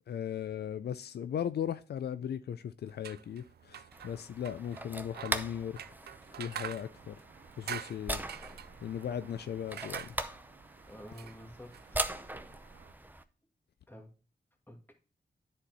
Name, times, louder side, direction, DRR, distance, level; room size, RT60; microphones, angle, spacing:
voice 1, 0.1-5.8 6.4-7.2 7.6-8.2 8.8-10.1, left 9 dB, 75° left, 0.4 m, -37 dB
sound 1, 2.9-12.9, right 9 dB, 75° right, 0.4 m, -47 dB
sound 2, 3.9-13.2, right 1 dB, 10° right, 0.6 m, -41 dB
voice 2, 10.8-12.2 13.9-14.2 14.7-14.9, equal, 10° left, 1.9 m, -50 dB
10.0 x 4.4 x 4.1 m
cardioid pair, 80°, 17 cm